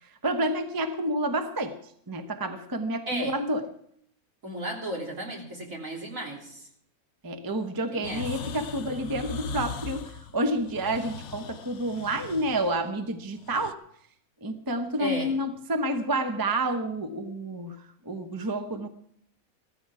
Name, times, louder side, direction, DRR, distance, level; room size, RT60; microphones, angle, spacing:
voice 1, 0.0-1.8 2.1-3.7 7.2-13.8 14.4-18.9, right 1 dB, 20° right, 7 dB, 0.9 m, -29 dB
voice 2, 3.1-3.4 4.4-6.7 7.9-8.5 15.0-15.3, right 1 dB, 65° right, -1 dB, 3.8 m, -34 dB
sound 1, 8.0-13.7, left 5 dB, 60° left, 1.0 m, -39 dB
16.0 x 14.0 x 4.8 m, 0.68 s
omnidirectional pair, 1.5 m